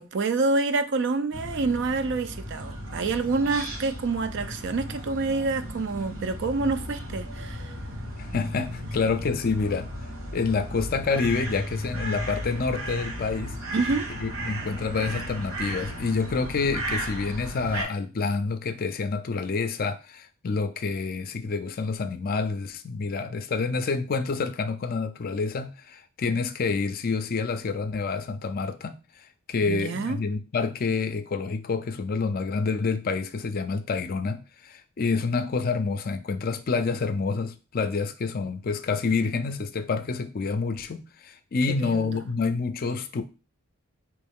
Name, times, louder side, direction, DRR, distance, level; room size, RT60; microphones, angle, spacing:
voice 1, 0.0-7.7 13.7-14.1 29.6-30.2 41.7-42.2, right 3 dB, 55° right, 0.4 m, -27 dB
sound 1, 1.3-17.8, equal, 70° right, 1.5 m, -35 dB
voice 2, 8.2-9.9 10.3-13.6 14.2-29.0 29.5-43.2, left 4 dB, 45° left, 0.4 m, -28 dB
4.4 x 3.0 x 3.5 m
head